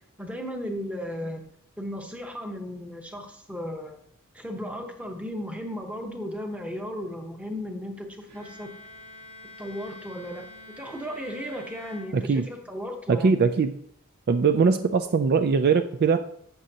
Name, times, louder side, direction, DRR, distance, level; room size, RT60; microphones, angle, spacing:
voice 1, 0.2-1.5 1.8-4.0 4.3-8.7 9.6-10.5 10.8-13.4, equal, 5° right, 3 dB, 1.0 m, -35 dB
Bowed string instrument, 8.3-12.7, left 2 dB, 75° right, 3.9 m, -47 dB
voice 2, 12.1-12.5 13.1-13.7 14.3-16.2, right 5 dB, 45° right, 8 dB, 0.4 m, -21 dB
11.5 x 7.7 x 2.8 m, 0.70 s
head